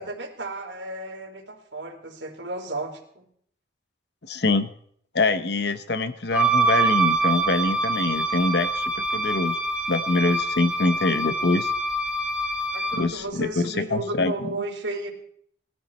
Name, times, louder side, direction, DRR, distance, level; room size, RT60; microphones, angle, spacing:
voice 1, 0.0-3.2 12.7-15.1, right 2 dB, 70° right, 1 dB, 3.4 m, -33 dB
voice 2, 4.2-4.7 5.1-9.6 9.9-11.7 13.0-14.3, left 3 dB, 60° left, 11 dB, 0.9 m, -24 dB
Wind instrument woodwind instrument, 6.3-13.1, right 2 dB, 5° right, 1.8 m, -25 dB
19.5 x 13.5 x 4.4 m, 0.63 s
head